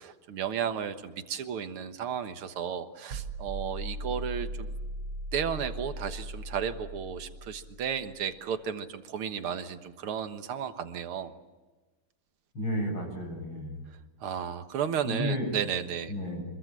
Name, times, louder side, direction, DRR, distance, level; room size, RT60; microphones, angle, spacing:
voice 1, 0.0-4.7 5.3-11.3 14.2-16.1, right 8 dB, 80° right, 9 dB, 2.3 m, -33 dB
sound 1, 3.1-8.1, right 1 dB, 60° right, 1.6 m, -38 dB
voice 2, 12.5-13.8 15.0-15.5 16.1-16.4, equal, 65° left, 2 dB, 8.4 m, -32 dB
26.5 x 22.5 x 7.6 m, 1.2 s
omnidirectional pair, 2.3 m